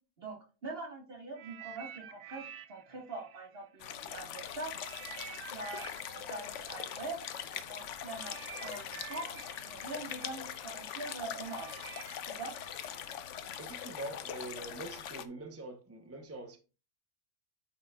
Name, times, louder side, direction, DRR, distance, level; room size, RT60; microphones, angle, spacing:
voice 1, 0.2-2.4 2.7-4.7 5.1-11.7 12.2-12.6, right 2 dB, 40° right, 1.7 m, -43 dB
sound 1, 1.3-4.3 4.7-13.7 14.4-14.6, right 10 dB, 80° right, 1.1 m, -51 dB
sound 2, 3.8-15.3, left 9 dB, 65° left, 0.8 m, -42 dB
voice 2, 13.6-16.6, right 2 dB, 15° right, 0.5 m, -44 dB
8.5 x 6.0 x 2.3 m
omnidirectional pair, 1.6 m